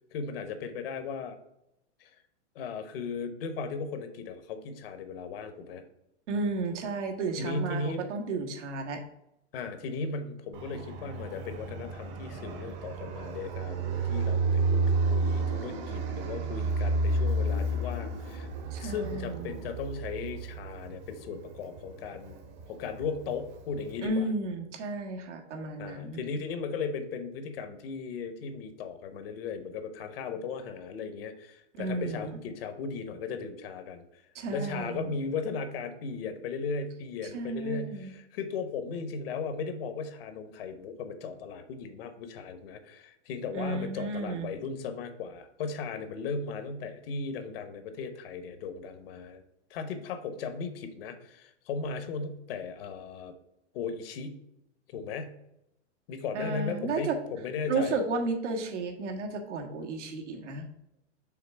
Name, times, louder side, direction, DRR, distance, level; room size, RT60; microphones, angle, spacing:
voice 1, 0.1-1.4 2.0-2.1 2.5-5.8 7.4-8.1 9.5-22.4 22.7-24.3 25.8-34.2 34.5-49.4 49.7-53.3 53.7-54.4 54.9-55.4 56.1-58.0, left 5 dB, 50° left, 9 dB, 1.0 m, -37 dB
voice 2, 6.3-9.0 18.7-19.5 24.0-26.2 31.8-32.4 34.3-35.2 37.3-38.1 43.5-44.5 56.3-57.2 57.7-60.6, right 3 dB, 75° right, 3 dB, 1.6 m, -33 dB
Fixed-wing aircraft airplane, 10.5-24.0, right 3 dB, 35° right, 1.1 m, -32 dB
5.9 x 3.6 x 5.8 m, 0.81 s
supercardioid pair, 160°, 36 cm